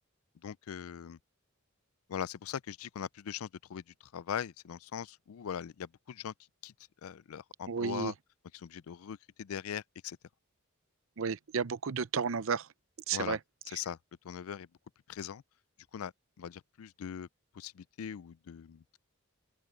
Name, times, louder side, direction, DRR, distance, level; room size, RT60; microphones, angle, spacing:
voice 1, 0.4-1.2 2.1-3.8 4.1-6.3 6.6-6.7 7.0-8.1 8.5-10.2 13.1-13.4 13.7-14.0 14.2-14.7 15.1-15.4 15.9-16.1 16.4-17.3 17.5-18.8, left 8 dB, 80° left, 0.4 m, -40 dB
voice 2, 7.7-8.1 11.2-12.7 13.1-13.4, right 5 dB, 65° right, 0.6 m, -32 dB
open air
head